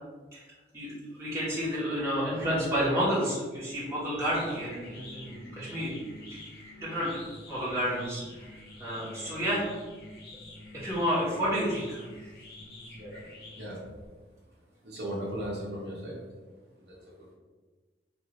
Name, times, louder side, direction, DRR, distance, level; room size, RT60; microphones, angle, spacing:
voice 1, 0.7-5.9 6.3-6.4 6.8-7.2 7.5-8.5 8.8-9.7 10.8-12.1, equal, 15° right, -9 dB, 1.1 m, -30 dB
sound 1, 3.7-14.1, left 2 dB, 55° left, 0.7 m, -47 dB
voice 2, 14.8-16.2 16.8-17.1, equal, 65° right, -5 dB, 0.9 m, -37 dB
3.8 x 2.6 x 2.9 m, 1.3 s
head